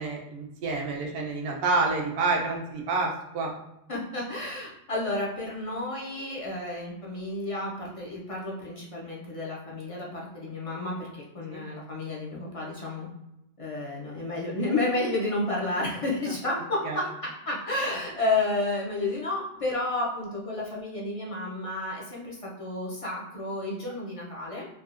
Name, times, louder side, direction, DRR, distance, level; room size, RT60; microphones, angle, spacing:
voice 1, 0.0-3.5 11.5-11.6 16.8-17.0, right 3 dB, 70° right, 0 dB, 0.8 m, -28 dB
voice 2, 3.9-13.1 13.6-24.7, left 2 dB, 40° left, -4 dB, 0.6 m, -31 dB
3.4 x 2.4 x 2.4 m, 0.87 s
omnidirectional pair, 1.0 m